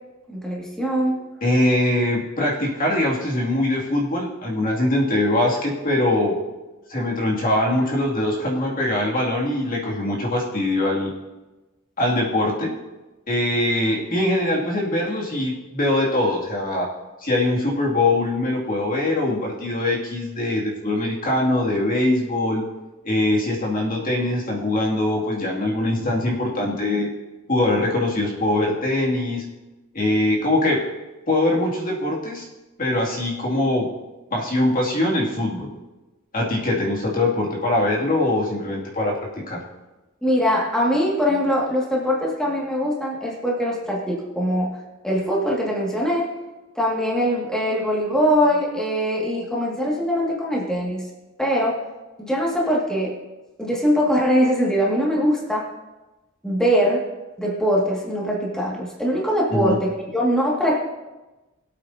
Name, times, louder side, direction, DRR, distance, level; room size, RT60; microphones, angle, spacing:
voice 1, 0.3-1.2 40.2-44.8 45.0-46.3 46.8-51.0 51.4-51.8 52.2-53.1 53.6-55.7 56.4-57.0 57.4-60.8, equal, 5° left, -4 dB, 2.0 m, -22 dB
voice 2, 1.4-6.4 6.9-11.1 12.0-12.7 13.3-16.9 17.2-22.6 23.0-27.1 27.5-29.5 29.9-30.9 31.3-32.5 32.8-33.9 34.3-35.7 36.3-39.6 59.5-59.8, left 1 dB, 45° left, -3 dB, 2.4 m, -22 dB
22.0 x 8.3 x 2.8 m, 1.1 s
head